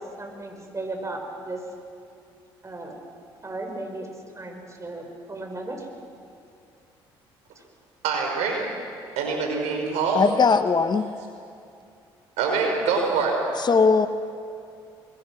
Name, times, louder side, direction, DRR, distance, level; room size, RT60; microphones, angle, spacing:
voice 1, 0.0-1.6 2.6-2.9 3.4-4.1 4.3-5.9, right 2 dB, 25° right, 3 dB, 6.0 m, -35 dB
voice 2, 8.0-8.7 9.2-10.2 12.4-13.4, right 5 dB, 75° right, 2 dB, 5.3 m, -24 dB
voice 3, 10.1-11.1 13.6-14.1, left 5 dB, 40° left, 9 dB, 1.2 m, -19 dB
26.0 x 22.0 x 6.3 m, 2.5 s
hypercardioid pair, 55°, 12 cm